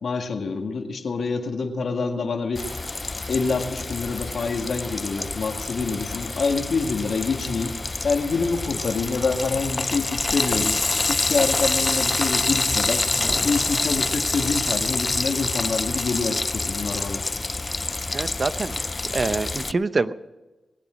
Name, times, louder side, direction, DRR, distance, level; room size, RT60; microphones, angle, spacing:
voice 1, 0.0-2.6 3.3-7.8 8.0-10.8 11.1-13.1 13.4-17.2, left 4 dB, 75° left, 4 dB, 1.8 m, -26 dB
Frying (food), 2.5-19.7, left 3 dB, 35° left, 0.4 m, -27 dB
sound 1, 13.2-15.1, equal, 5° left, 1.9 m, -37 dB
voice 2, 18.1-18.8 19.1-20.3, right 3 dB, 50° right, 13 dB, 0.7 m, -26 dB
20.5 x 8.5 x 6.3 m, 1.1 s
cardioid pair, 55°, 0 cm